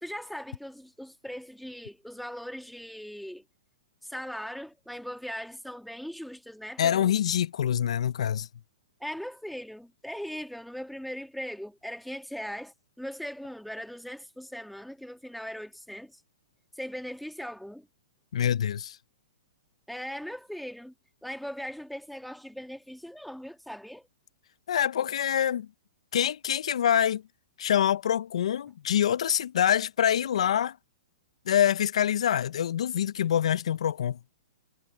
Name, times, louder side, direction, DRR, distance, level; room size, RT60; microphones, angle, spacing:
voice 1, 0.0-3.4 4.0-7.1 9.0-16.2 16.7-17.9 19.9-20.9 21.2-24.1, equal, ahead, 1.8 m, -39 dB
voice 2, 6.8-8.5 18.3-19.0 24.7-25.7 26.1-27.2 27.6-30.8 31.5-34.2, left 10 dB, 75° left, 0.5 m, -25 dB
hypercardioid pair, 145°, 3 cm